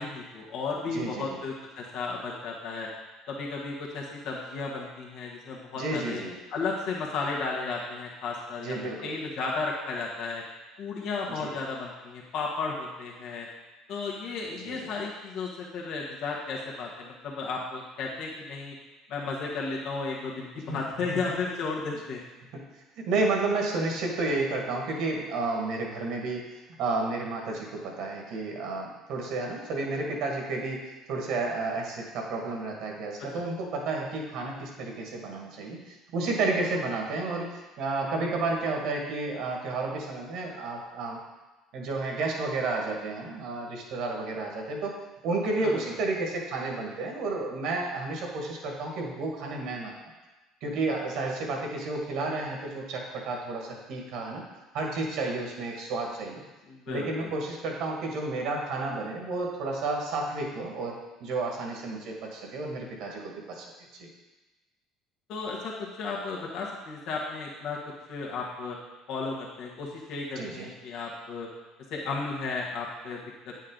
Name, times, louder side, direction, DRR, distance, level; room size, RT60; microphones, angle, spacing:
voice 1, 0.0-2.9 3.3-6.2 6.5-8.7 9.0-10.4 10.8-13.5 13.9-18.7 19.1-22.2 45.6-45.8 56.7-57.3 65.3-67.8 68.1-68.8 69.1-71.5 71.9-73.6, left 4 dB, 65° left, -3 dB, 1.5 m, -34 dB
voice 2, 0.9-1.4 5.7-6.4 8.6-9.1 11.4-11.6 14.6-14.9 20.7-20.8 21.1-21.2 23.0-26.4 26.8-41.2 41.7-45.0 45.2-49.9 50.6-54.4 54.7-56.4 56.9-63.7 64.0-64.1 70.4-70.7, right 3 dB, 65° right, 0 dB, 1.8 m, -31 dB
8.9 x 5.5 x 3.9 m, 1.1 s
hypercardioid pair, 75°, 0 cm